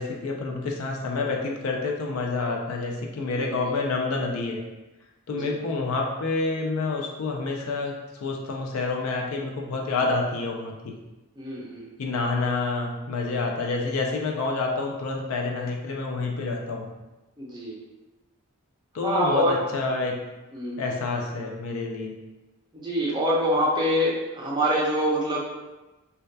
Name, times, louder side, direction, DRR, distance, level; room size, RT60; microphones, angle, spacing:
voice 1, 0.0-4.6 5.3-7.9 8.2-11.0 12.0-16.9 18.9-20.2 20.8-22.1, left 3 dB, 70° left, 1 dB, 0.4 m, -28 dB
voice 2, 3.3-3.7 5.3-5.5 11.4-11.9 17.4-17.7 19.0-19.6 20.5-20.8 22.7-25.4, equal, 20° right, -5 dB, 0.4 m, -25 dB
2.6 x 2.2 x 2.2 m, 1.1 s
head